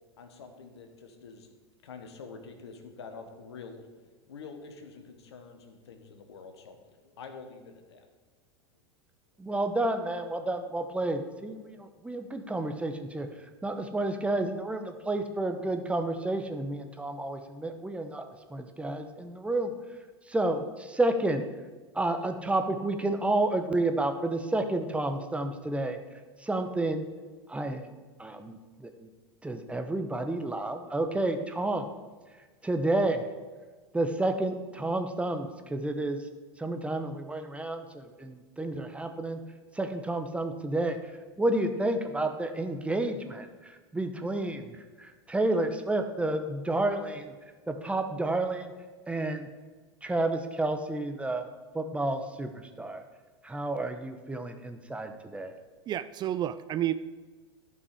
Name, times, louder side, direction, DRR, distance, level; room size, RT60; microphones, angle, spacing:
voice 1, 0.2-1.5 1.8-3.9 4.3-6.8 7.0-8.1, left 4 dB, 75° left, 6 dB, 1.4 m, -46 dB
voice 2, 9.4-13.3 13.6-18.2 18.5-19.7 20.3-21.4 21.9-26.0 26.4-27.0 27.5-27.9 28.2-29.1 29.4-31.9 32.6-33.2 33.9-36.2 36.6-39.4 39.7-41.0 41.4-47.3 47.7-48.7 49.1-49.5 50.0-51.5 51.7-52.5 52.8-53.0 53.4-55.6, right 2 dB, 10° right, 6 dB, 0.9 m, -30 dB
voice 3, 55.9-56.9, right 12 dB, 30° right, 13 dB, 0.4 m, -30 dB
12.0 x 5.6 x 4.9 m, 1.4 s
hypercardioid pair, 90°, 14 cm